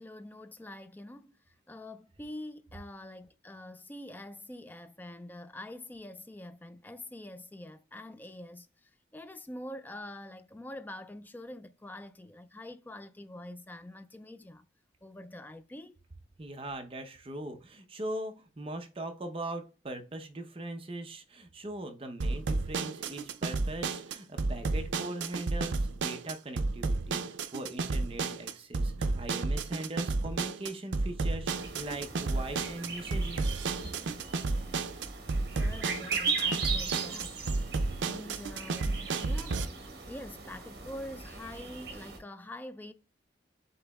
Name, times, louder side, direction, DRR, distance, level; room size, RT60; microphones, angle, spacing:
voice 1, 0.0-1.4 1.7-14.7 15.0-16.0 35.4-39.7 40.1-42.9, left 1 dB, 10° left, 0.3 m, -45 dB
voice 2, 16.4-33.5, right 1 dB, 30° right, 0.7 m, -40 dB
sound 1, 22.2-39.7, right 3 dB, 90° right, 0.5 m, -32 dB
sound 2, 31.5-42.2, right 4 dB, 60° right, 1.2 m, -38 dB
7.8 x 3.0 x 2.3 m
head